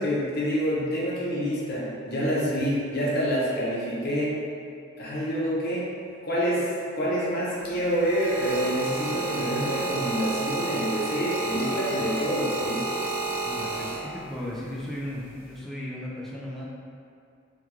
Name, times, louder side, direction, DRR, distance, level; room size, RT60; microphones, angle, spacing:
voice 1, 0.0-4.4 5.0-5.9 6.2-6.7 6.9-13.0, equal, 45° left, -7 dB, 0.7 m, -27 dB
sound 1, 7.6-14.4 15.3-15.6, right 3 dB, 65° right, 0.7 m, -31 dB
voice 2, 13.5-16.7, left 1 dB, ahead, -6 dB, 0.3 m, -36 dB
3.5 x 2.3 x 2.9 m, 2.4 s
head